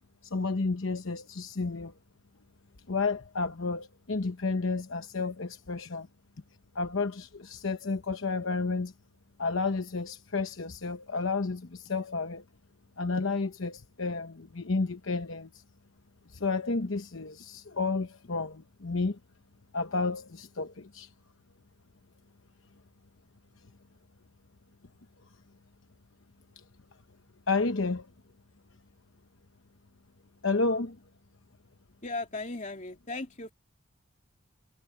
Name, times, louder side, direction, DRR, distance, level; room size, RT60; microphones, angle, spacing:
voice 1, 0.2-1.9 2.9-6.1 6.7-8.9 9.4-12.4 13.0-15.6 16.3-19.2 19.7-21.1 27.5-28.1 30.4-31.0, left 3 dB, 65° left, 0.9 m, -31 dB
voice 2, 32.0-33.5, left 2 dB, 35° left, 3.0 m, -37 dB
head